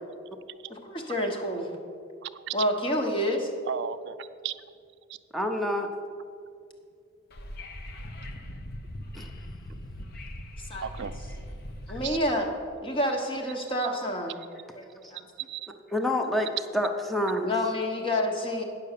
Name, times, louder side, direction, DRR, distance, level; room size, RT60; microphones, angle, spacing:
voice 1, 0.7-1.7 2.5-3.5 10.7-10.9 11.9-12.5 12.8-14.4 14.7-15.3 17.4-18.6, equal, 25° left, 2 dB, 1.1 m, -28 dB
voice 2, 2.2-2.5 3.7-4.5 10.8-11.4 12.0-12.2 15.5-15.7, right 8 dB, 60° right, 13 dB, 0.4 m, -35 dB
voice 3, 5.3-5.9 9.1-9.3 15.9-16.5 16.7-17.5, left 1 dB, ahead, 4 dB, 0.7 m, -27 dB
Wind / Subway metro underground, 7.3-12.3, left 1 dB, 50° left, 0.7 m, -40 dB
9.4 x 6.7 x 6.7 m, 2.3 s
head